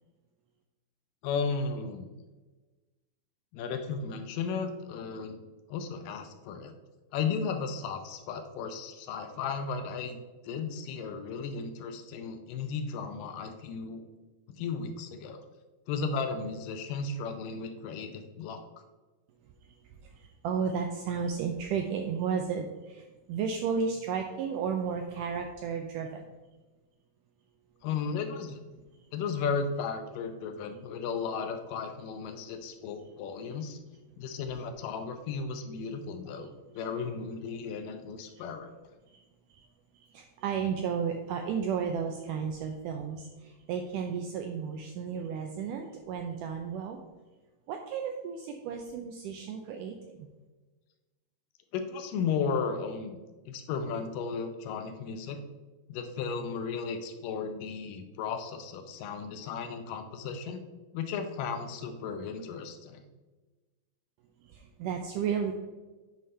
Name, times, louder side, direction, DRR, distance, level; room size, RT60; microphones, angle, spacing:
voice 1, 1.2-2.1 3.5-5.4 5.7-6.7 7.1-10.2 10.4-14.1 14.6-15.4 15.9-18.6 27.8-28.6 29.1-33.8 34.2-38.7 51.7-53.2 53.5-55.4 55.9-60.6 60.9-63.0, left 5 dB, 75° left, 7 dB, 2.1 m, -35 dB
voice 2, 19.4-26.2 38.3-38.4 39.1-39.2 39.5-39.7 39.9-47.0 47.7-50.3 64.4-65.5, right 6 dB, 85° right, 4 dB, 1.9 m, -33 dB
9.0 x 5.5 x 3.2 m, 1.2 s
omnidirectional pair, 4.2 m